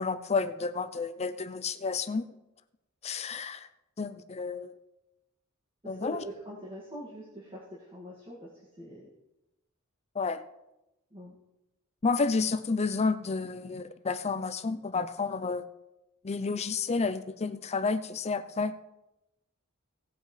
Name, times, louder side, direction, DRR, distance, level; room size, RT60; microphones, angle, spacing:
voice 1, 0.0-2.2 3.0-3.7 4.0-4.7 5.8-6.2 10.1-10.4 12.0-15.7 16.2-18.7, left 4 dB, 30° left, 12 dB, 0.5 m, -30 dB
voice 2, 5.8-9.1 11.1-11.4, equal, 25° right, -6 dB, 2.1 m, -44 dB
17.5 x 8.2 x 3.3 m, 0.95 s
head